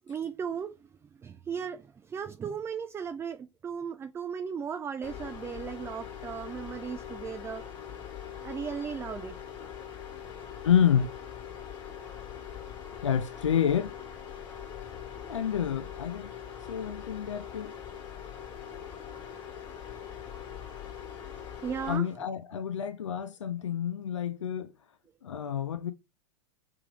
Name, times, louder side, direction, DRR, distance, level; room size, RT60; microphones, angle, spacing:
voice 1, 0.1-0.7 1.2-7.6 8.4-9.3 16.7-16.8 18.7-19.2 21.6-22.1, right 7 dB, 15° right, 0.4 m, -36 dB
sound 1, 5.0-22.0, left 8 dB, 30° left, 1.6 m, -42 dB
voice 2, 10.6-11.1 13.0-14.0 15.3-16.3 16.7-17.8 21.9-24.7 25.2-25.9, left 9 dB, 80° left, 0.5 m, -28 dB
3.3 x 3.3 x 3.5 m
hypercardioid pair, 95°, 16 cm